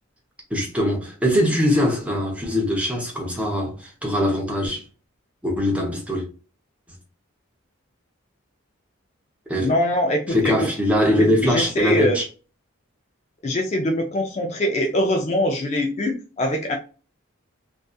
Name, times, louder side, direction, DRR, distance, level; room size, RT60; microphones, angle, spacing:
voice 1, 0.5-4.8 5.4-6.3 9.5-9.7 10.3-12.3, left 1 dB, 5° right, 0.7 m, -22 dB
voice 2, 9.6-10.5 11.2-12.2 13.4-16.8, left 1 dB, 30° left, 0.3 m, -23 dB
2.6 x 2.3 x 2.2 m
head